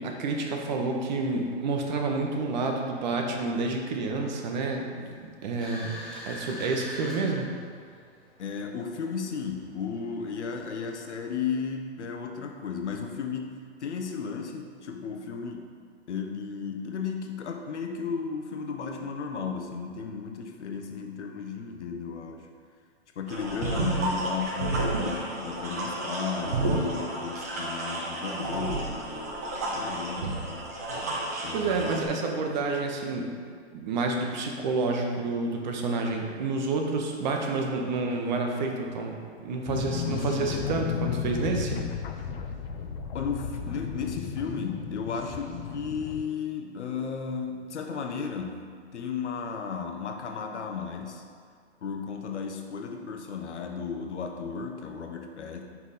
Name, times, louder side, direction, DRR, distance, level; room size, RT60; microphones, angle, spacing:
voice 1, 0.0-6.0 6.3-7.5 31.5-33.3 33.7-41.8, right 3 dB, 40° right, 2 dB, 0.8 m, -29 dB
sound 1, 5.6-11.4, equal, ahead, 1.2 m, -44 dB
voice 2, 8.4-13.5 13.8-15.7 16.1-22.5 23.2-30.7 31.4-31.9 43.1-48.7 48.9-51.2 51.8-55.6, left 6 dB, 90° left, 3 dB, 0.9 m, -34 dB
sound 2, 23.3-32.0, right 2 dB, 15° right, 0.3 m, -31 dB
sound 3, 39.7-46.2, left 7 dB, 55° left, 0.6 m, -34 dB
5.6 x 4.7 x 4.0 m, 2.1 s
hypercardioid pair, 155°, 34 cm